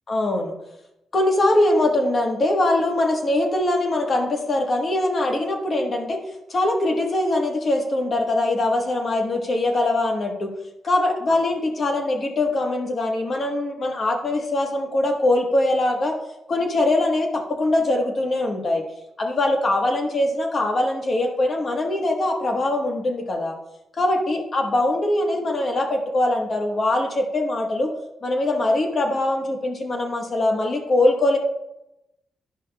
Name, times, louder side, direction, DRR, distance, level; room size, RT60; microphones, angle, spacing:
voice 1, 0.1-0.5 1.1-6.2 6.5-10.5 10.8-16.1 16.5-18.8 19.2-23.6 24.0-27.9 28.2-31.4, left 2 dB, 45° left, 2 dB, 1.2 m, -22 dB
12.0 x 5.3 x 2.2 m, 0.91 s
cardioid pair, 95°, 0 cm